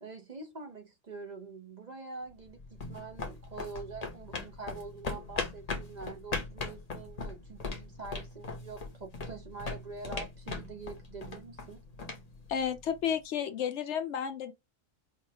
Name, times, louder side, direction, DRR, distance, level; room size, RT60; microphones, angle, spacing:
voice 1, 0.0-11.8, right 4 dB, 40° right, 0.7 m, -45 dB
sound 1, 2.3-13.1, left 3 dB, 35° left, 0.8 m, -40 dB
voice 2, 12.5-14.5, left 8 dB, 70° left, 0.9 m, -32 dB
4.8 x 2.4 x 2.7 m
omnidirectional pair, 1.3 m